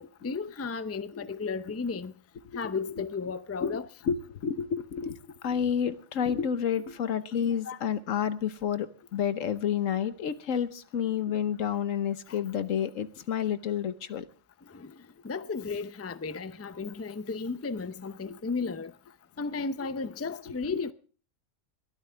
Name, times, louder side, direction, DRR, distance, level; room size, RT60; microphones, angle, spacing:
voice 1, 0.0-2.1 2.5-3.9 7.5-7.8 12.3-12.4 14.7-14.9 15.2-18.9 19.4-20.9, left 4 dB, 20° left, 0.4 m, -34 dB
voice 2, 2.4-3.0 3.6-3.8 4.0-5.2 5.4-14.2 18.3-18.4 20.4-20.8, left 8 dB, 90° left, 1.4 m, -30 dB
22.0 x 13.5 x 3.4 m
omnidirectional pair, 1.3 m